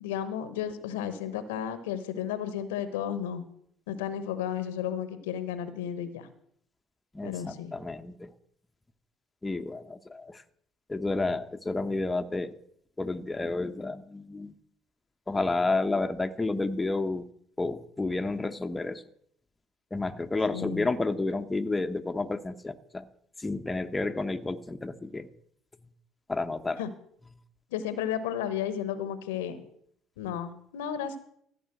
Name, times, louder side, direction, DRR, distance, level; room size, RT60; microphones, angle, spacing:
voice 1, 0.0-3.4 3.9-6.3 7.2-7.7 20.5-20.8 26.8-26.9 27.7-29.6 30.2-31.2, left 9 dB, 75° left, 12 dB, 1.0 m, -33 dB
voice 2, 7.1-8.3 9.4-10.4 10.9-12.6 13.0-14.6 15.3-17.2 17.6-19.0 19.9-23.1 23.4-25.3 26.3-26.8, left 3 dB, 15° left, 7 dB, 0.9 m, -30 dB
14.5 x 5.5 x 7.8 m, 0.67 s
figure-of-eight pair, 55°, 0 cm